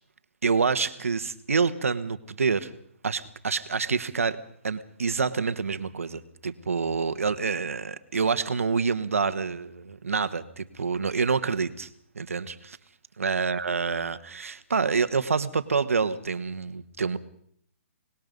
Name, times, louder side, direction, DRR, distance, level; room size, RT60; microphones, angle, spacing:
voice 1, 0.4-2.7 3.0-4.4 4.6-11.9 12.1-12.8 13.2-17.2, right 5 dB, 90° right, 12 dB, 1.5 m, -27 dB
24.5 x 20.0 x 5.4 m, 0.64 s
hypercardioid pair, 150°, 7 cm